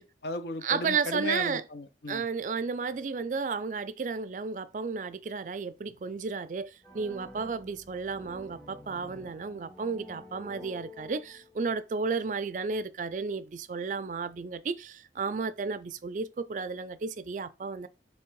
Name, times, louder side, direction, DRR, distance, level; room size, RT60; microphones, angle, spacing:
voice 1, 0.0-2.2, left 2 dB, 70° left, 0.6 m, -36 dB
voice 2, 0.6-1.6 2.1-17.9, right 5 dB, 45° right, 0.3 m, -33 dB
sound 1, 6.8-11.8, left 1 dB, 10° left, 0.9 m, -49 dB
3.5 x 3.2 x 4.5 m
head